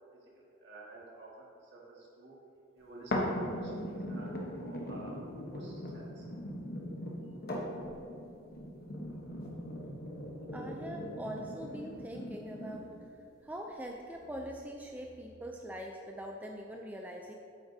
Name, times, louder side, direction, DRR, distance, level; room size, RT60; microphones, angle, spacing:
voice 1, 0.6-2.3 2.7-5.1 5.4-6.3, right 2 dB, 55° right, -4 dB, 1.8 m, -51 dB
sound 1, 3.1-13.1 13.7-13.8, equal, 45° left, 1.0 m, -39 dB
voice 2, 10.5-12.9 13.4-17.3, equal, 10° right, 1 dB, 0.4 m, -43 dB
8.7 x 7.9 x 2.7 m, 2.7 s
head